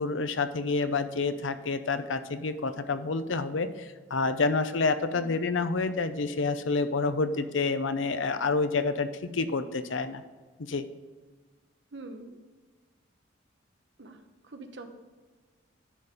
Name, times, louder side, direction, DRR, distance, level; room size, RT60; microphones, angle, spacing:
voice 1, 0.0-10.2 10.6-10.9, left 4 dB, 75° left, 11 dB, 0.6 m, -28 dB
voice 2, 11.9-12.4 14.0-14.9, right 2 dB, 60° right, 6 dB, 0.9 m, -44 dB
11.0 x 4.3 x 5.0 m, 1.4 s
head